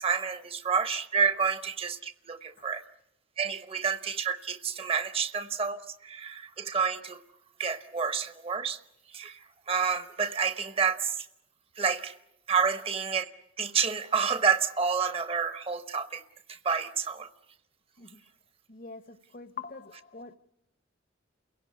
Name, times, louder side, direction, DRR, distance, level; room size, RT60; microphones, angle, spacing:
voice 1, 0.0-2.8 3.4-7.2 7.6-8.8 9.1-9.4 9.7-11.3 11.8-12.1 12.5-13.3 13.6-16.2 16.5-17.3, right 6 dB, 30° right, 0.8 m, -29 dB
voice 2, 18.7-20.4, left 5 dB, 45° left, 0.8 m, -44 dB
29.5 x 17.0 x 9.6 m
head